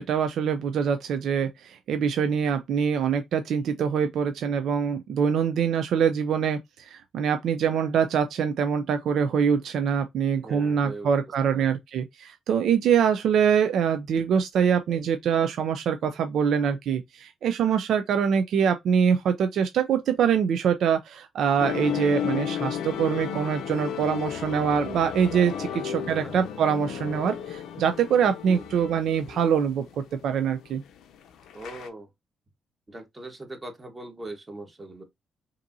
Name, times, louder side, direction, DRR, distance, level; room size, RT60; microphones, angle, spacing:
voice 1, 0.0-30.8, right 7 dB, 70° right, 0.5 m, -24 dB
voice 2, 10.4-11.1 11.4-11.7 25.7-25.8 26.1-26.4 28.5-28.7 31.5-32.1 32.9-35.0, right 2 dB, 25° right, 1.3 m, -40 dB
sound 1, 21.6-31.9, left 8 dB, 85° left, 0.6 m, -34 dB
5.1 x 2.7 x 2.7 m
cardioid pair, 90°, 0 cm